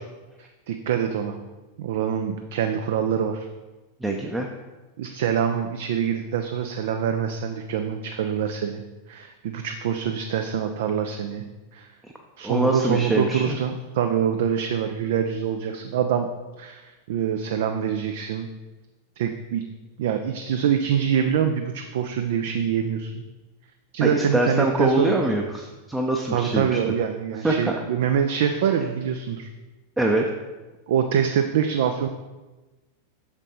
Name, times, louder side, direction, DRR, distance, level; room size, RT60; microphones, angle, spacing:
voice 1, 0.4-1.4 1.8-3.5 5.0-8.8 9.1-11.4 11.7-11.9 12.4-16.3 16.6-18.5 19.2-19.6 20.0-23.2 23.9-25.1 26.3-29.5 30.9-32.1, right 8 dB, 55° right, 7 dB, 0.4 m, -25 dB
voice 2, 4.0-4.5 12.4-13.6 24.0-26.9 27.4-27.7 30.0-30.3, right 1 dB, 10° right, 1 dB, 0.6 m, -24 dB
6.3 x 5.2 x 4.0 m, 1.2 s
figure-of-eight pair, 90°, 0 cm